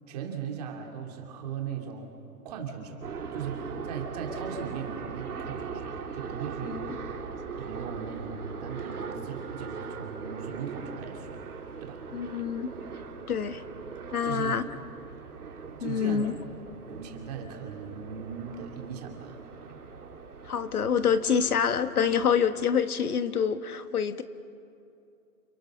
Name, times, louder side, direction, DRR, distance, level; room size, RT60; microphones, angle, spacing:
voice 1, 0.1-2.1 2.4-3.0 3.3-7.0 7.6-11.4 11.8-12.0 14.2-14.6 15.8-16.3 16.7-19.8, right 7 dB, 25° right, 2 dB, 2.6 m, -38 dB
sound 1, 3.0-22.4, right 5 dB, 90° right, 3.4 m, -40 dB
voice 2, 12.1-12.7 13.3-13.6 14.1-14.6 15.8-16.3 20.4-24.2, left 7 dB, 80° left, 11 dB, 1.6 m, -26 dB
29.5 x 27.5 x 6.5 m, 2.6 s
hypercardioid pair, 165°, 44 cm